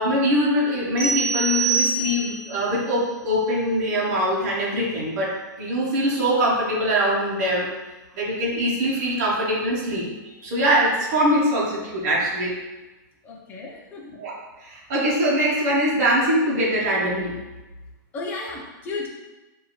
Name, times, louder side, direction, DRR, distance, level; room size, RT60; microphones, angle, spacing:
voice 1, 0.0-5.3 5.6-7.7 8.1-12.5 14.0-14.3 14.6-17.4, equal, 50° right, -6 dB, 1.2 m, -23 dB
sound 1, 1.0-2.5, right 4 dB, 25° right, 1.1 m, -24 dB
voice 2, 13.2-14.0 18.1-19.1, left 3 dB, 15° left, -1 dB, 0.5 m, -33 dB
4.5 x 2.8 x 3.1 m, 1.1 s
supercardioid pair, 165°, 11 cm